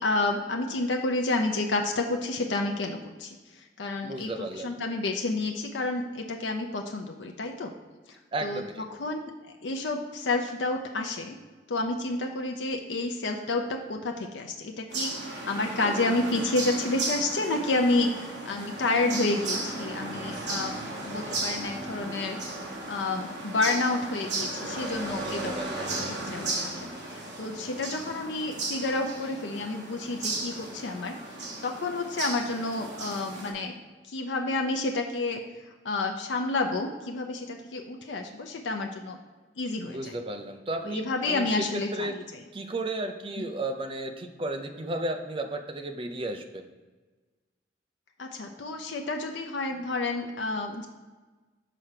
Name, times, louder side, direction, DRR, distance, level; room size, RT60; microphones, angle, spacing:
voice 1, 0.0-4.3 4.6-7.7 8.1-9.2 9.6-11.4 11.7-22.4 22.9-25.9 26.3-31.2 31.6-33.7 34.1-35.4 35.8-39.2 39.6-40.1 40.8-42.2 43.4-43.5 48.2-50.9, left 2 dB, 85° left, 3 dB, 0.6 m, -30 dB
voice 2, 4.0-4.7 8.3-8.8 25.1-25.9 39.9-41.6 41.9-42.2 42.5-46.6, right 2 dB, 30° right, 6 dB, 0.5 m, -34 dB
sound 1, 14.9-33.5, right 2 dB, 70° right, 1.3 m, -35 dB
5.0 x 4.5 x 5.8 m, 1.3 s
head